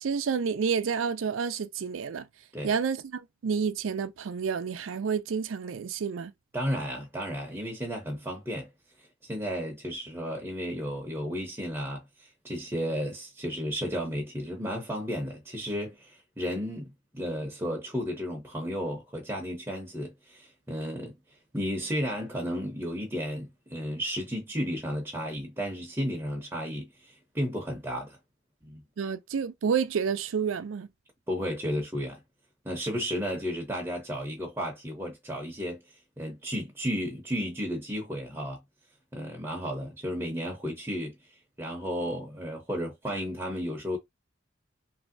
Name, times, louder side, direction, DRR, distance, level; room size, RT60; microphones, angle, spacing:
voice 1, 0.0-2.3 2.6-6.3 29.0-30.9, right 6 dB, 85° right, 0.4 m, -29 dB
voice 2, 6.5-8.7 9.2-21.1 21.5-28.2 28.6-28.8 31.3-32.2 32.6-35.8 36.2-38.6 39.1-41.1 41.6-44.0, equal, 10° right, 0.7 m, -33 dB
3.1 x 2.6 x 2.6 m
head